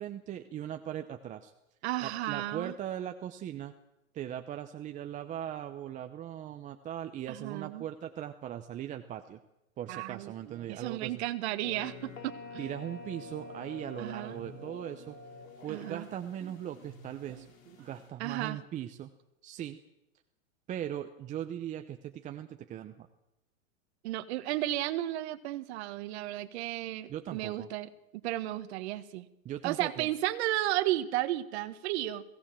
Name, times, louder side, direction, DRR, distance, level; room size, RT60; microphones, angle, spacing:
voice 1, 0.0-1.5 2.0-3.7 4.1-9.4 9.8-11.2 12.6-15.2 15.6-17.5 17.8-19.1 19.4-19.8 20.7-23.1 27.1-27.7 29.4-30.1, right 10 dB, 20° right, 7 dB, 0.7 m, -39 dB
voice 2, 1.8-2.7 7.3-7.8 9.9-12.7 14.0-14.4 15.7-16.1 16.4-16.5 17.8-17.9 18.2-18.6 24.0-27.9 28.2-29.3 29.6-32.2, right 15 dB, 50° right, 13 dB, 1.5 m, -34 dB
sound 1, 11.6-18.1, left 3 dB, 75° left, 4.9 m, -48 dB
23.0 x 17.0 x 7.5 m, 0.87 s
supercardioid pair, 145°, 41 cm